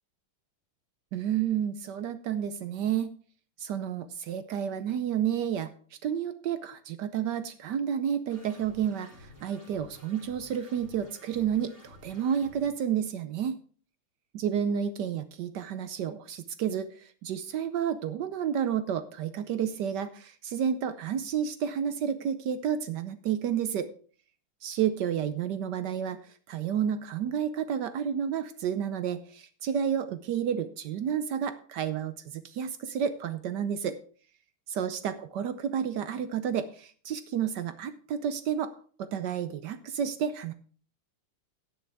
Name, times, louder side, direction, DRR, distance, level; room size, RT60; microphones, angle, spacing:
voice 1, 1.1-3.1 3.6-5.7 6.0-13.6 14.3-23.9 24.6-26.2 26.5-34.0 34.7-38.7 39.0-40.5, right 8 dB, 70° right, 11 dB, 1.0 m, -30 dB
sound 1, 8.3-12.7, left 1 dB, 10° right, 3.5 m, -52 dB
17.5 x 6.4 x 3.4 m, 0.44 s
omnidirectional pair, 2.4 m